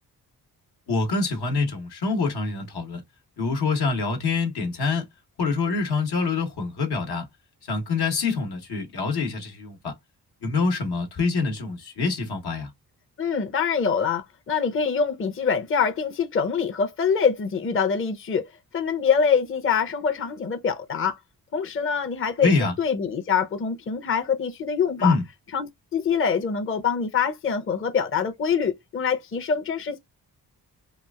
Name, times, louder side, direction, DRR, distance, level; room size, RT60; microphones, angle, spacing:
voice 1, 0.9-3.0 3.4-5.0 5.4-7.2 7.7-9.9 10.4-12.7 22.4-22.7 25.0-25.2, left 4 dB, 80° left, 1.1 m, -25 dB
voice 2, 13.2-18.4 18.7-21.2 21.5-25.1 25.5-30.0, left 6 dB, 35° left, 0.6 m, -24 dB
3.0 x 2.4 x 2.3 m
cardioid pair, 75°, 38 cm